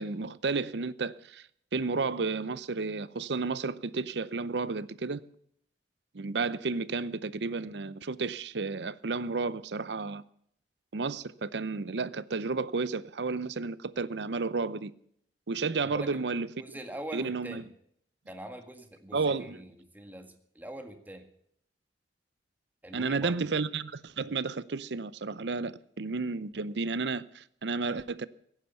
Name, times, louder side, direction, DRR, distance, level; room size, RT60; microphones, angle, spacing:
voice 1, 0.0-1.5 1.7-5.2 6.1-10.2 10.9-14.9 15.5-16.6 17.1-17.6 19.1-19.6 22.9-28.3, right 4 dB, 75° right, 0.7 m, -32 dB
voice 2, 15.8-16.2 16.6-17.6 18.3-21.2 22.8-23.4, right 1 dB, 10° right, 1.8 m, -43 dB
16.0 x 9.9 x 6.9 m
head